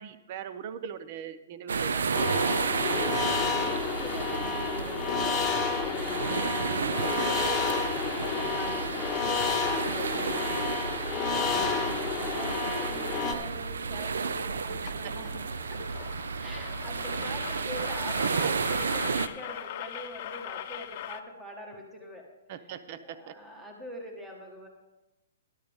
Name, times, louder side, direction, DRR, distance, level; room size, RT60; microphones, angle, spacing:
voice 1, 0.0-2.8 11.6-12.1 14.7-15.1 22.5-23.4, right 8 dB, 45° right, 13 dB, 0.7 m, -41 dB
sound 1, 1.7-19.3, right 5 dB, 85° right, 0.6 m, -32 dB
sound 2, 2.1-13.3, left 5 dB, 15° left, 1.2 m, -30 dB
voice 2, 3.1-11.7 12.1-15.4 15.7-22.3 23.0-24.7, equal, 10° right, 1 dB, 1.9 m, -44 dB
sound 3, 11.6-11.8 14.3-14.4 14.7-14.9 15.2-21.2, left 11 dB, 45° left, 0.8 m, -41 dB
13.0 x 11.5 x 3.7 m, 0.99 s
hypercardioid pair, 150°, 0 cm